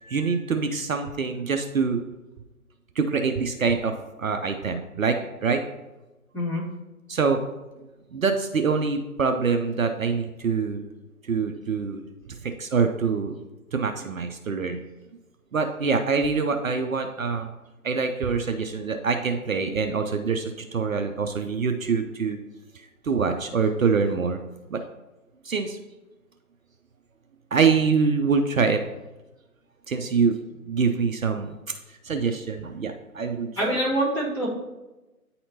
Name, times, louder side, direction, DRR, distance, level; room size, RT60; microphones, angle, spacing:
voice 1, 0.0-2.0 3.0-5.6 7.1-7.4 8.1-10.8 11.2-12.0 12.3-13.4 13.7-14.8 15.5-17.5 17.8-22.4 22.7-24.4 24.7-24.8 25.4-25.8 27.5-28.8 29.9-30.4 30.7-31.6 31.9-33.8, right 5 dB, 65° right, 6 dB, 0.6 m, -25 dB
voice 2, 6.3-6.6 33.6-34.5, right 1 dB, 5° left, -13 dB, 1.9 m, -25 dB
9.4 x 4.2 x 2.7 m, 1.1 s
figure-of-eight pair, 140°, 45 cm